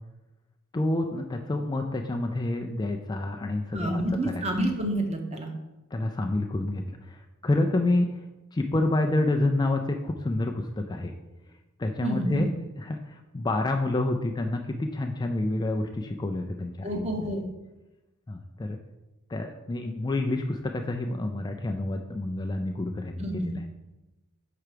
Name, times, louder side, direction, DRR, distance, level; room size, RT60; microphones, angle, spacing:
voice 1, 0.7-4.4 5.9-8.2 8.5-11.1 11.8-12.5 12.8-17.3 18.3-18.8 19.3-23.6, left 2 dB, 20° left, 3 dB, 0.3 m, -28 dB
voice 2, 3.7-5.5 12.0-12.5 16.8-17.4 23.2-23.5, right 1 dB, 30° right, 3 dB, 0.8 m, -28 dB
5.8 x 4.5 x 5.0 m, 1.0 s
head